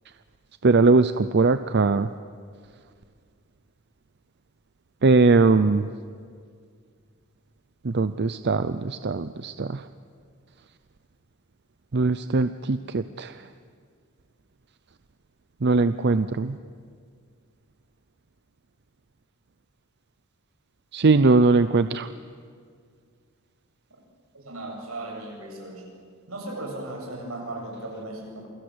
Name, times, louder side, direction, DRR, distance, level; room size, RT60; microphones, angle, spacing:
voice 1, 0.6-2.1 5.0-5.9 7.8-9.8 11.9-13.3 15.6-16.6 20.9-22.1, right 3 dB, 50° right, 11 dB, 0.6 m, -20 dB
voice 2, 24.3-25.9 26.3-28.5, right 2 dB, 85° right, 1 dB, 7.9 m, -36 dB
28.5 x 23.0 x 8.0 m, 2.1 s
head